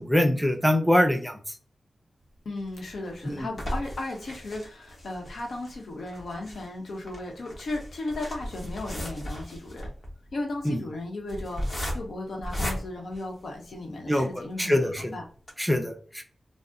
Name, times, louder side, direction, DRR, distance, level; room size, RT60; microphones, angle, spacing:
voice 1, 0.0-1.6 3.2-3.5 10.6-10.8 14.1-14.3 14.6-15.2 15.6-16.2, left 1 dB, ahead, 4 dB, 0.5 m, -24 dB
voice 2, 2.4-9.9 10.3-15.2, left 2 dB, 80° left, 1 dB, 0.8 m, -35 dB
sound 1, 2.6-14.0 14.5-14.6 14.9-15.0 15.4-15.5, equal, 40° left, 0.9 m, -36 dB
2.6 x 2.0 x 3.5 m, 0.42 s
wide cardioid pair, 85°, 0 cm